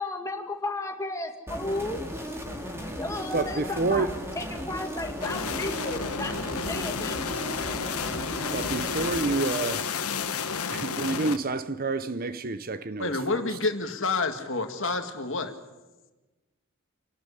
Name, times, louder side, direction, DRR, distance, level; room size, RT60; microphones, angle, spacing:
voice 1, 0.0-2.0 2.7-4.1 4.3-7.2, left 2 dB, 15° left, 2.2 m, -34 dB
sound 1, 1.5-9.3, equal, 10° right, 2.8 m, -36 dB
voice 2, 3.3-4.2 8.5-9.9 10.7-13.4, right 3 dB, 40° right, 0.7 m, -29 dB
sound 2, 5.2-11.4, left 5 dB, 80° left, 1.4 m, -31 dB
voice 3, 13.0-15.5, left 3 dB, 60° left, 1.9 m, -28 dB
28.0 x 12.0 x 9.9 m
head